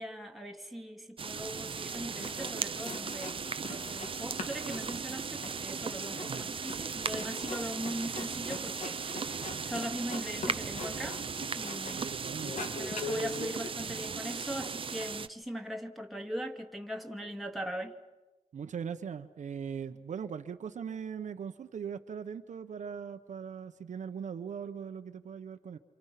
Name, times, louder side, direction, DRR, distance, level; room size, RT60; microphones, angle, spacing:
voice 1, 0.0-11.2 11.6-12.1 12.8-17.9, equal, ahead, 2 dB, 2.3 m, -40 dB
sound 1, 1.2-15.3, right 5 dB, 45° right, 0.8 m, -37 dB
sound 2, 1.9-2.5 2.8-4.1 4.4-12.1 12.4-13.7, left 3 dB, 75° left, 3.1 m, -42 dB
voice 2, 12.0-12.8 18.5-25.8, right 7 dB, 75° right, 8 dB, 1.2 m, -40 dB
28.0 x 27.5 x 5.9 m, 1.1 s
wide cardioid pair, 120°, 13 cm